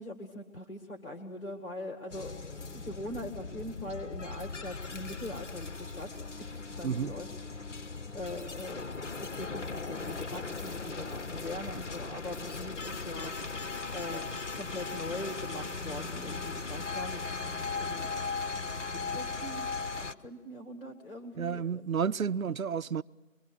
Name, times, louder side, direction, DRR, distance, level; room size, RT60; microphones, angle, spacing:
voice 1, 0.0-6.3 6.5-7.3 8.1-13.3 13.9-17.2 17.8-18.1 19.1-19.7 20.0-21.8, left 1 dB, 40° left, 2.0 m, -42 dB
sound 1, 2.1-20.1, left 4 dB, 55° left, 0.9 m, -38 dB
voice 2, 21.4-23.0, right 7 dB, 75° right, 0.6 m, -31 dB
24.0 x 23.0 x 6.3 m
figure-of-eight pair, 165°, 42 cm